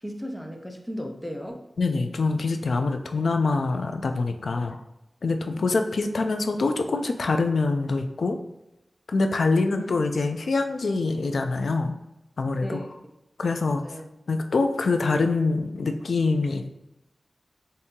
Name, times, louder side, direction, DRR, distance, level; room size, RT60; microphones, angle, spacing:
voice 1, 0.0-1.6 4.6-4.7 9.7-9.9 12.6-12.9 13.8-14.1, equal, 5° left, 2 dB, 0.6 m, -35 dB
voice 2, 1.8-4.8 5.2-8.4 9.1-11.9 12.4-12.8 13.4-14.0 14.3-16.7, left 3 dB, 85° left, 6 dB, 0.4 m, -25 dB
4.1 x 2.7 x 3.6 m, 0.89 s
wide cardioid pair, 80°, 0 cm